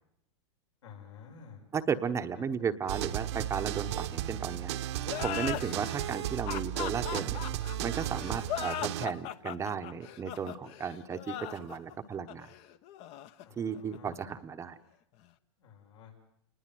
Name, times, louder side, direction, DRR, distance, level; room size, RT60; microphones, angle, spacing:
voice 1, 0.8-1.6 13.4-14.1 15.6-16.2, left 6 dB, 80° left, 0 dB, 6.8 m, -51 dB
voice 2, 1.7-4.7 5.2-7.4 7.8-12.5 13.6-14.8, right 7 dB, 20° right, 9 dB, 1.0 m, -34 dB
sound 1, 2.9-9.1, right 12 dB, 65° right, 1.3 m, -35 dB
sound 2, 5.0-14.3, left 12 dB, 40° left, 1.1 m, -39 dB
29.5 x 20.5 x 7.7 m, 0.74 s
hypercardioid pair, 135°, 15 cm